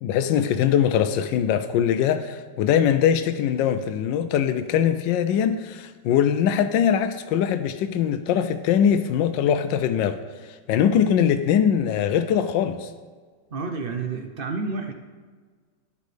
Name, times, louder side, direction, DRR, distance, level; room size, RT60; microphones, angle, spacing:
voice 1, 0.0-10.2 10.4-12.9, left 9 dB, 90° left, 9 dB, 1.3 m, -22 dB
voice 2, 13.5-14.9, right 4 dB, 70° right, 4 dB, 0.5 m, -29 dB
12.0 x 10.5 x 3.3 m, 1.5 s
omnidirectional pair, 1.9 m